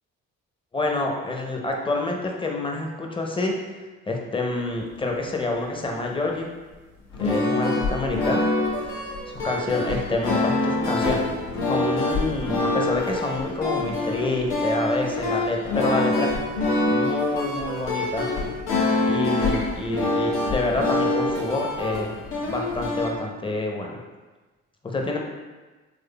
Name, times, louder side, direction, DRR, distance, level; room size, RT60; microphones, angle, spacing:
voice 1, 0.7-6.5 7.2-8.5 9.3-11.3 11.6-16.3 16.8-18.3 19.0-22.1 22.5-24.0 24.8-25.2, left 2 dB, 15° left, 1 dB, 0.6 m, -27 dB
sound 1, 7.1-23.1, left 2 dB, 80° left, 0.9 m, -25 dB
3.7 x 3.1 x 2.2 m, 1.2 s
hypercardioid pair, 55°, 35 cm